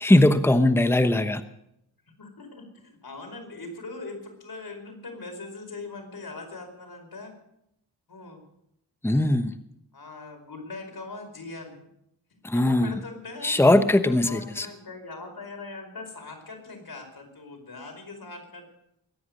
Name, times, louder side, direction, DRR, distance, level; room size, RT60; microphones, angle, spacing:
voice 1, 0.0-1.4 9.0-9.5 12.4-12.9 13.4-14.7, left 1 dB, 5° left, 10 dB, 1.0 m, -20 dB
voice 2, 2.1-7.3 8.1-8.4 9.9-11.8 12.5-13.6 14.0-18.6, left 3 dB, 55° left, 3 dB, 4.9 m, -41 dB
22.0 x 9.7 x 6.5 m, 0.79 s
cardioid pair, 65°, 43 cm